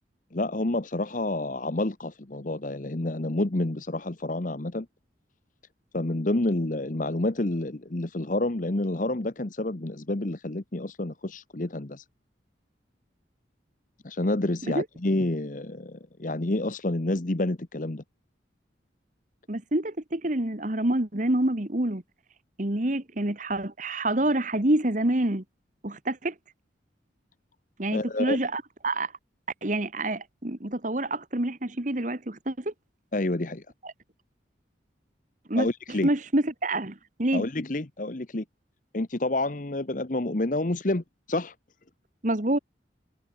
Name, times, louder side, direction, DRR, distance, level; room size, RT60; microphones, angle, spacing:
voice 1, 0.3-4.9 5.9-12.0 14.0-18.0 27.9-28.4 33.1-33.6 35.6-36.1 37.3-38.4 38.9-41.5, left 2 dB, 45° left, 1.1 m, -29 dB
voice 2, 19.5-22.0 22.6-25.4 25.8-26.3 27.8-29.1 29.6-32.7 33.8-33.9 35.5-37.5 42.2-42.6, right 1 dB, 45° right, 1.7 m, -27 dB
head